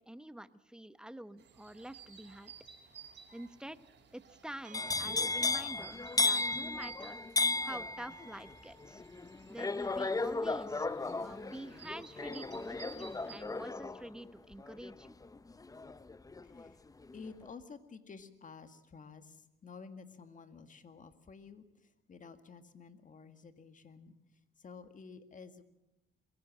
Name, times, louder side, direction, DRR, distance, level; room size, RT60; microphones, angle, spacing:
voice 1, 0.0-2.5 3.3-3.8 4.1-7.2 7.6-9.0 9.5-10.9 11.2-15.2, right 1 dB, 5° right, 13 dB, 0.9 m, -47 dB
sound 1, 1.4-13.4, right 7 dB, 65° right, 4.8 m, -56 dB
sound 2, 4.6-6.6, right 6 dB, 40° right, 1.1 m, -55 dB
sound 3, 4.7-16.7 17.0-17.5, left 3 dB, 15° left, 0.7 m, -35 dB
voice 2, 16.4-16.8 17.1-25.6, left 5 dB, 40° left, 9 dB, 1.9 m, -52 dB
22.5 x 16.5 x 7.5 m, 0.91 s
cardioid pair, 90°, 20 cm